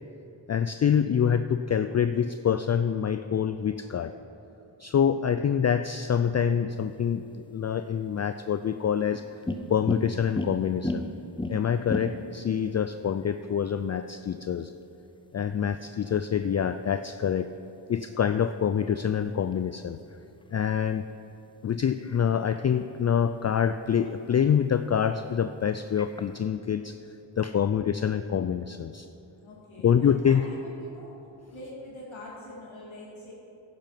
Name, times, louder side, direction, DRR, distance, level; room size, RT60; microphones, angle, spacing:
voice 1, 0.5-4.1 4.8-9.2 9.7-11.0 11.5-14.7 15.3-17.5 17.9-20.0 20.5-21.0 21.6-27.0 27.4-29.1 29.8-30.5, left 8 dB, 35° left, 11 dB, 0.4 m, -26 dB
sound 1, 6.7-26.5, left 1 dB, 10° left, 0.7 m, -41 dB
voice 2, 29.4-31.1 31.5-33.3, left 1 dB, 75° left, -5 dB, 2.4 m, -44 dB
10.5 x 9.2 x 5.8 m, 2.8 s
cardioid pair, 45°, 47 cm